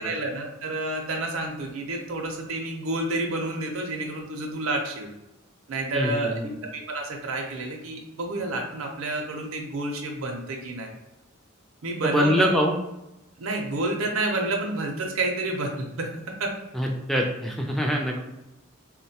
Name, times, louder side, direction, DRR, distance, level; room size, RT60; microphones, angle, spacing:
voice 1, 0.0-5.1 5.7-10.9 11.8-12.5 13.4-16.1 16.4-16.5, right 2 dB, 75° right, 1 dB, 0.5 m, -29 dB
voice 2, 5.9-6.5 12.0-12.7 16.7-18.3, equal, ahead, 0 dB, 0.3 m, -24 dB
3.8 x 2.1 x 2.7 m, 0.90 s
head